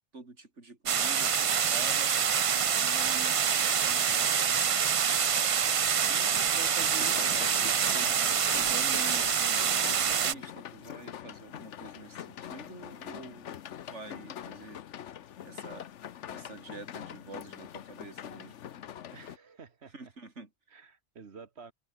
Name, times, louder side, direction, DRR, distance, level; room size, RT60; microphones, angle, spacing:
voice 1, 0.1-2.4 2.8-4.5 6.0-8.1 8.6-13.6 13.9-14.8 15.4-15.9 16.3-18.6 19.9-20.5, right 3 dB, 85° right, 3.9 m, -47 dB
sound 1, 0.9-10.3, right 7 dB, 50° right, 0.4 m, -26 dB
sound 2, 6.8-19.4, left 10 dB, 90° left, 1.2 m, -44 dB
voice 2, 19.1-20.1 20.7-21.7, right 5 dB, 65° right, 1.7 m, -50 dB
omnidirectional pair, 1.2 m